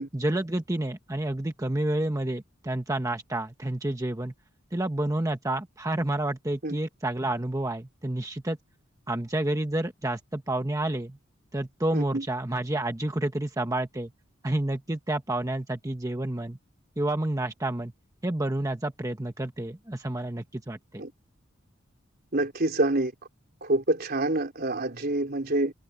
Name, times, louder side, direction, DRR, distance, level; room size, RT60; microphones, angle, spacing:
voice 1, 0.1-4.3 4.7-8.6 9.1-11.2 11.5-14.1 14.4-16.6 17.0-17.9 18.2-21.0, right 1 dB, 15° right, 1.0 m, -29 dB
voice 2, 11.9-12.2 21.0-21.1 22.3-23.1 23.6-25.7, right 2 dB, 50° right, 3.7 m, -27 dB
head